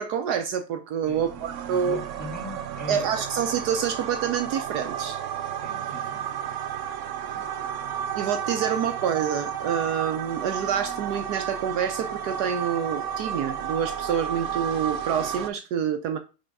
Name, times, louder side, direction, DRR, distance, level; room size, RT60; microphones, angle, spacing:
voice 1, 0.0-2.0 2.9-5.2 8.1-16.2, right 8 dB, 70° right, 1.1 m, -27 dB
sound 1, 1.0-15.5, right 8 dB, 85° right, 0.6 m, -32 dB
voice 2, 1.1-3.1 5.6-6.3 7.3-7.5, left 3 dB, 10° left, 1.2 m, -41 dB
5.7 x 3.5 x 5.3 m
omnidirectional pair, 1.9 m